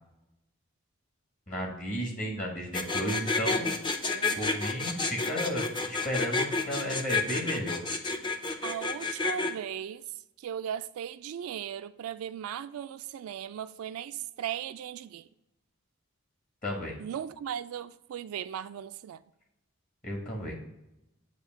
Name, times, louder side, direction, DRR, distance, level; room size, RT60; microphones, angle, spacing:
voice 1, 1.5-3.8 4.4-7.8 16.6-17.0 20.0-20.5, equal, 35° left, 1.4 m, -33 dB
sound 1, 2.7-9.5, left 3 dB, 20° left, 0.5 m, -29 dB
voice 2, 4.1-4.7 8.6-10.0 10.4-15.2 17.0-19.2, right 9 dB, 90° right, 0.3 m, -37 dB
8.1 x 2.8 x 5.1 m
head